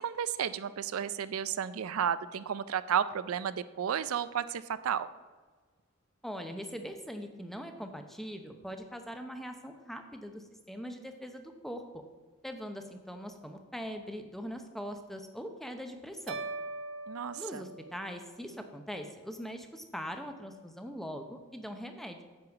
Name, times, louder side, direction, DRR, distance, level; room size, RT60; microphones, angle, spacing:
voice 1, 0.0-5.1 17.1-17.6, right 8 dB, 80° right, 15 dB, 0.4 m, -32 dB
voice 2, 6.2-11.8 12.4-16.4 17.4-22.2, equal, ahead, 6 dB, 0.7 m, -41 dB
sound 1, 16.3-18.6, right 3 dB, 65° right, 0.8 m, -41 dB
9.6 x 4.9 x 7.1 m, 1.4 s
head